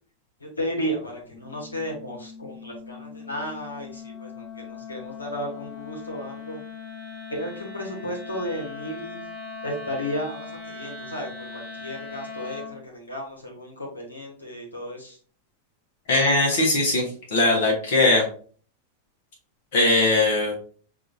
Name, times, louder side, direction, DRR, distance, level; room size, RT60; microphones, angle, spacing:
voice 1, 0.4-6.6 7.4-9.2 9.6-15.2, equal, 80° left, -1 dB, 1.2 m, -34 dB
Wind instrument woodwind instrument, 1.3-12.8, left 5 dB, 35° left, 1.4 m, -40 dB
voice 2, 16.1-17.0 17.3-18.2 19.7-20.5, left 2 dB, 50° left, -1 dB, 1.1 m, -20 dB
6.1 x 2.7 x 2.6 m, 0.43 s
figure-of-eight pair, 90°, 0 cm